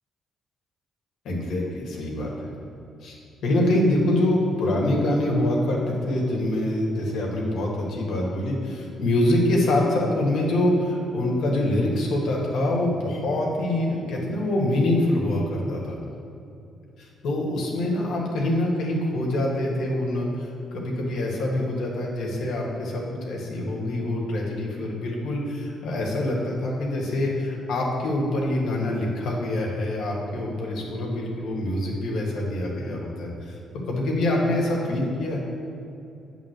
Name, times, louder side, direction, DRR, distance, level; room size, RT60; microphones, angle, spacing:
voice 1, 1.2-2.5 3.0-3.1 3.4-16.0 17.0-35.4, left 1 dB, 75° left, -2 dB, 1.7 m, -25 dB
8.3 x 3.7 x 6.6 m, 2.8 s
cardioid pair, 90°, 0 cm